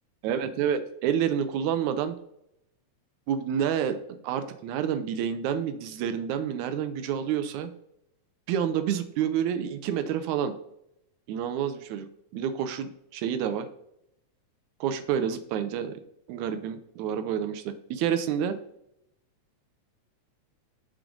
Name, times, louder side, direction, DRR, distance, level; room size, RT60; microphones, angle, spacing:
voice 1, 0.2-2.2 3.3-7.7 8.5-10.6 11.3-12.1 12.3-13.7 14.8-16.0 16.3-18.6, right 8 dB, 80° right, 10 dB, 1.9 m, -28 dB
6.2 x 4.6 x 3.8 m, 0.78 s
omnidirectional pair, 3.5 m